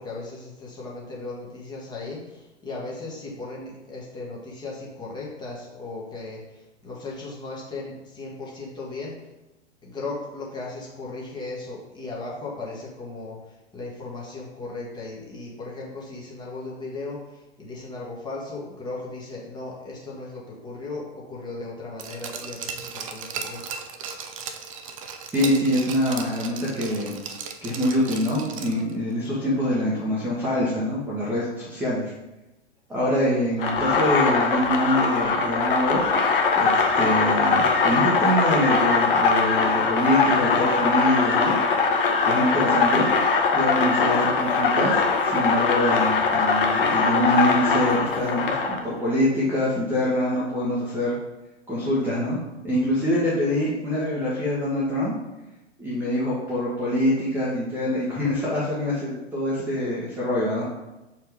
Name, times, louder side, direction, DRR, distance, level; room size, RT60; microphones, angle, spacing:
voice 1, 0.0-9.2 9.8-23.6 33.0-33.7, left 3 dB, 10° left, -4 dB, 1.3 m, -37 dB
Glass, 22.0-28.9 29.3-29.4, right 6 dB, 30° right, 0.4 m, -36 dB
voice 2, 25.3-27.1 27.6-32.1 32.9-36.0 36.5-41.6 42.3-43.1 43.5-51.1 51.7-52.4 52.6-55.1 55.8-60.6, left 1 dB, 5° right, -8 dB, 1.1 m, -25 dB
sound 1, 33.6-48.8, left 4 dB, 50° left, 1.0 m, -21 dB
6.5 x 4.4 x 3.5 m, 1.0 s
figure-of-eight pair, 110°, 36 cm